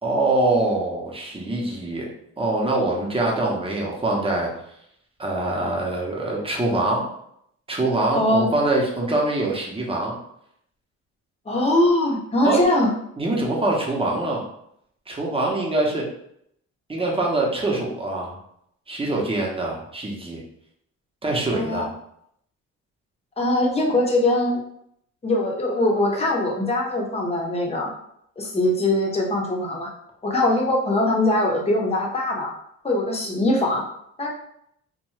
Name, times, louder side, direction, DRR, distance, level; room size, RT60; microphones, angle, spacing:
voice 1, 0.0-2.1 2.4-4.5 5.2-7.1 7.7-10.1 12.4-12.6 13.2-14.4 15.1-16.1 16.9-18.3 18.9-20.4 21.2-21.9, right 2 dB, 20° right, -2 dB, 0.8 m, -24 dB
voice 2, 8.1-8.4 11.5-12.9 21.5-21.9 23.4-24.6 25.2-27.9 28.4-29.9 30.2-32.5 32.8-33.8 34.2-34.3, left 1 dB, 20° left, -1 dB, 0.7 m, -22 dB
2.6 x 2.2 x 3.1 m, 0.74 s
cardioid pair, 90°, 30 cm